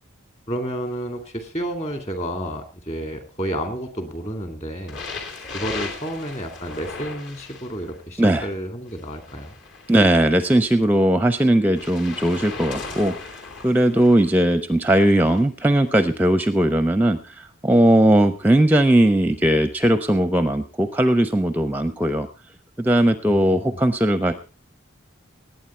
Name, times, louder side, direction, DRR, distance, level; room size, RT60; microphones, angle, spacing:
voice 1, 0.5-5.0 5.5-9.6 23.3-23.8, right 1 dB, 30° left, 6 dB, 2.4 m, -31 dB
sound 1, 4.9-8.0 8.9-10.7 11.8-14.3 15.1-15.4 16.2-16.3, left 4 dB, 60° left, 3.0 m, -37 dB
voice 2, 9.9-13.1 13.6-22.3 22.8-24.3, right 1 dB, 10° right, 10 dB, 0.5 m, -18 dB
19.0 x 9.0 x 4.4 m, 0.34 s
head